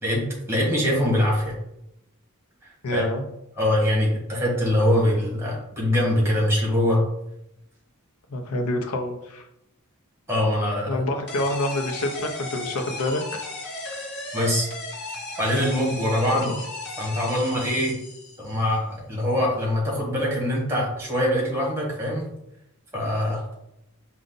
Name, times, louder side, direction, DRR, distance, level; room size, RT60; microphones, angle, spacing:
voice 1, 0.0-1.5 2.6-3.0 3.6-7.0 10.3-11.0 14.3-14.7 15.4-16.5 17.0-18.0 18.4-22.3 22.9-23.4, left 1 dB, 10° right, -3 dB, 1.4 m, -23 dB
voice 2, 2.8-3.2 8.3-9.4 10.9-13.5 16.5-16.6, left 1 dB, 80° left, 4 dB, 0.7 m, -27 dB
sound 1, 11.3-18.6, left 2 dB, 50° left, 1.0 m, -35 dB
5.1 x 2.4 x 3.9 m, 0.84 s
head